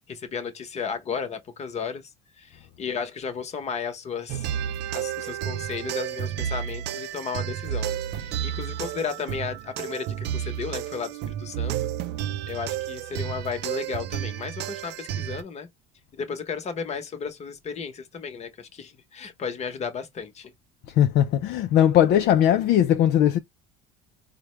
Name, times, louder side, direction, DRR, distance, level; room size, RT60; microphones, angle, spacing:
voice 1, 0.1-2.0 2.4-4.5 4.9-11.9 12.5-15.7 16.1-20.5, left 6 dB, 35° left, 1.0 m, -34 dB
sound 1, 4.3-15.4, right 10 dB, 60° right, 0.5 m, -31 dB
voice 2, 20.9-23.4, left 10 dB, 55° left, 0.5 m, -19 dB
4.7 x 2.2 x 3.1 m
cardioid pair, 115°, 20 cm